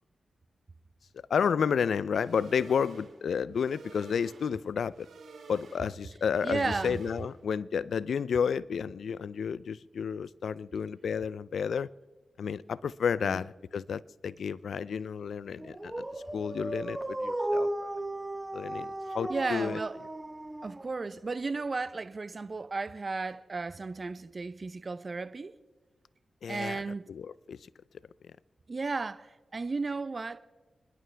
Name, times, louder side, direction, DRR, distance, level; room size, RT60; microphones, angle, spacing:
voice 1, 1.3-5.1 5.5-11.9 12.4-16.0 16.3-17.7 18.5-19.8 26.4-26.8 27.1-27.6, left 7 dB, 80° left, 0.4 m, -31 dB
sound 1, 2.1-7.5, right 4 dB, 90° right, 4.3 m, -51 dB
voice 2, 6.4-7.0 13.2-13.4 19.3-20.0 20.6-25.5 26.5-27.1 28.7-30.4, right 3 dB, 50° right, 0.7 m, -34 dB
Dog, 15.6-21.2, right 1 dB, 20° right, 1.3 m, -35 dB
27.0 x 11.0 x 3.4 m
cardioid pair, 45°, 0 cm